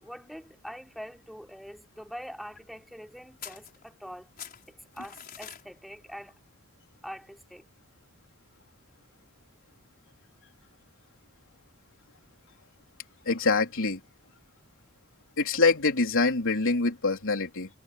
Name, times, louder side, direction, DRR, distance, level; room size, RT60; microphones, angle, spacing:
voice 1, 0.0-4.3 4.7-6.4 7.0-7.7 12.2-12.3, equal, ahead, 3.4 m, -44 dB
sound 1, 3.4-4.1 4.4-5.6, left 9 dB, 45° left, 5.3 m, -44 dB
voice 2, 13.3-14.0 15.4-17.7, left 3 dB, 60° left, 3.9 m, -25 dB
head